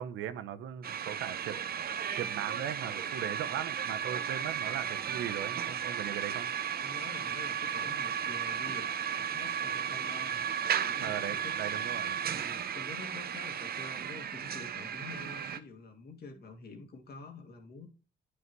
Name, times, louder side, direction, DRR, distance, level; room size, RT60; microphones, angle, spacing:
voice 1, 0.0-1.6 2.1-6.5 11.0-12.2, right 10 dB, 80° right, 0.8 m, -38 dB
sound 1, 0.8-15.6, right 8 dB, 50° right, 0.7 m, -35 dB
voice 2, 6.8-8.9 9.2-10.4 10.7-11.6 12.3-17.9, left 3 dB, 55° left, 2.2 m, -48 dB
9.5 x 5.7 x 3.1 m
cardioid pair, 90°, 20 cm